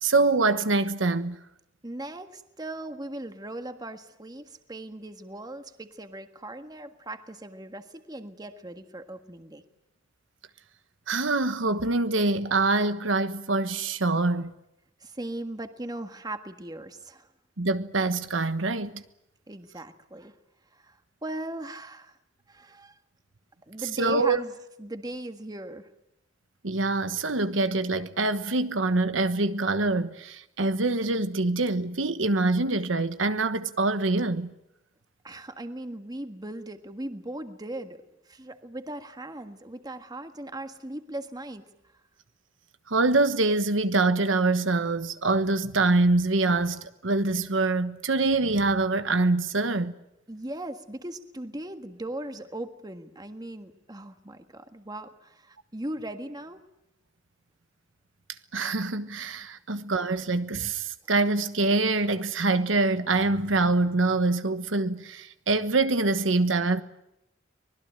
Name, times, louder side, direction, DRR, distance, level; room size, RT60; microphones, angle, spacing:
voice 1, 0.0-1.4 11.1-14.5 17.6-19.0 24.0-24.4 26.6-34.5 42.9-49.9 58.5-66.8, right 3 dB, 75° right, 1.2 m, -25 dB
voice 2, 1.8-9.6 15.0-17.3 19.5-20.3 20.7-22.2 22.5-23.0 23.7-24.5 24.8-25.9 35.2-38.0 38.3-41.7 50.3-56.6, right 1 dB, 20° right, 1.6 m, -38 dB
24.5 x 20.5 x 9.0 m
head